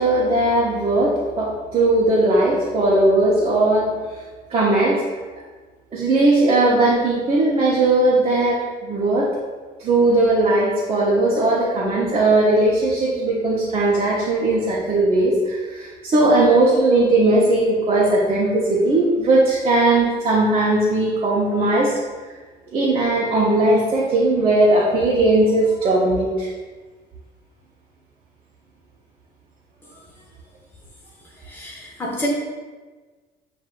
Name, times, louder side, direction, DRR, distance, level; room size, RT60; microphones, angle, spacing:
voice 1, 0.0-3.9 4.5-5.0 5.9-9.3 9.8-21.9 22.7-26.5, right 2 dB, 35° right, -6 dB, 0.9 m, -18 dB
voice 2, 31.5-32.3, left 1 dB, 15° left, -5 dB, 1.2 m, -29 dB
7.8 x 2.6 x 2.5 m, 1.4 s
cardioid pair, 110°, 17 cm